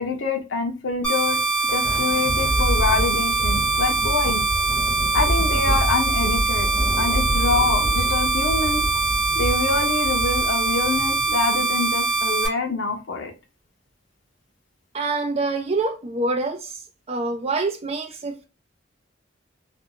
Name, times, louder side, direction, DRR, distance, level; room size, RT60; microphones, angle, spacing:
voice 1, 0.0-1.4 1.7-4.4 5.1-6.7 7.0-8.8 9.3-13.3, left 3 dB, 80° left, 0.6 m, -25 dB
sound 1, 1.0-12.5, right 4 dB, 5° left, 1.3 m, -23 dB
Thunder, 1.3-12.0, equal, 30° left, 1.2 m, -27 dB
voice 2, 14.9-16.8 17.1-18.5, right 3 dB, 35° right, 0.5 m, -26 dB
2.4 x 2.3 x 2.8 m
head